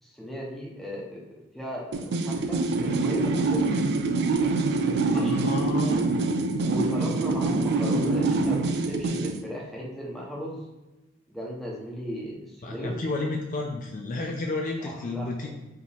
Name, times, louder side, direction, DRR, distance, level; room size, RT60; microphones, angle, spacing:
voice 1, 0.0-3.7 5.1-5.4 6.6-10.6 11.3-13.0 14.8-15.5, equal, ahead, -4 dB, 0.9 m, -36 dB
sound 1, 1.9-9.4, right 3 dB, 55° right, 0.4 m, -25 dB
voice 2, 5.1-6.1 12.6-15.5, left 2 dB, 40° left, 2 dB, 0.4 m, -31 dB
4.6 x 3.0 x 3.5 m, 1.0 s
head